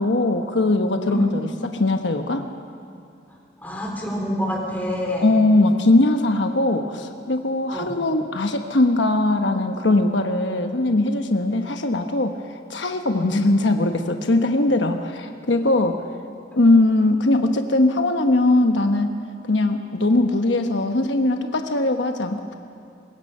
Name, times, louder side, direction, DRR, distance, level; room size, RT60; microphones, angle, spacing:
voice 1, 0.0-2.4 5.2-12.4 12.7-16.0 16.5-19.2 19.5-22.6, left 2 dB, 85° left, 6 dB, 1.1 m, -20 dB
voice 2, 1.1-1.4 3.6-5.3 7.7-7.9 13.1-13.3, equal, 10° left, -2 dB, 3.8 m, -27 dB
23.0 x 21.0 x 5.5 m, 2.4 s
head